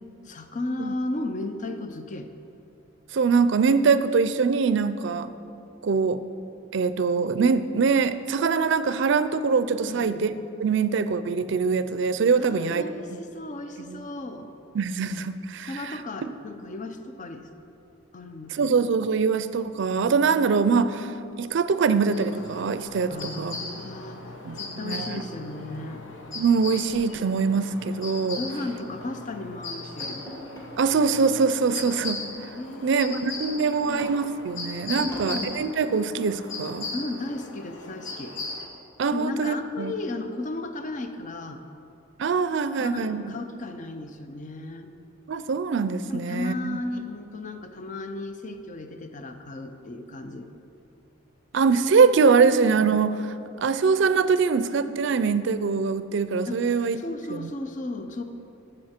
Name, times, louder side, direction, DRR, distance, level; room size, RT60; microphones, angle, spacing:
voice 1, 0.2-2.3 9.8-10.3 12.3-14.5 15.6-17.5 18.1-18.8 23.1-24.2 24.5-26.0 28.4-30.2 32.5-33.3 33.6-34.2 34.9-35.6 36.9-38.4 39.1-41.6 42.8-44.9 46.1-50.5 56.5-56.6 56.9-58.2, left 2 dB, 40° left, 8 dB, 0.6 m, -35 dB
voice 2, 3.1-5.3 5.8-6.2 6.7-10.3 10.6-12.9 13.9-14.0 14.7-15.7 16.2-16.3 18.5-23.5 24.4-25.2 26.3-28.4 30.8-32.2 32.8-36.9 39.0-39.9 42.2-43.3 45.3-46.8 51.5-57.0 57.3-57.5, right 5 dB, 65° right, 13 dB, 0.4 m, -23 dB
sound 1, 22.1-38.7, left 3 dB, 70° left, 1.1 m, -38 dB
sound 2, 23.0-23.6 23.9-24.2 24.5-24.7 25.0-25.1 25.5-27.1 27.6-27.8 28.3-29.2 29.6-29.7 30.0-30.7 31.8-32.5 32.9-34.5 35.1-35.8, equal, 20° left, 2.3 m, -44 dB
12.5 x 7.5 x 4.4 m, 2.8 s
head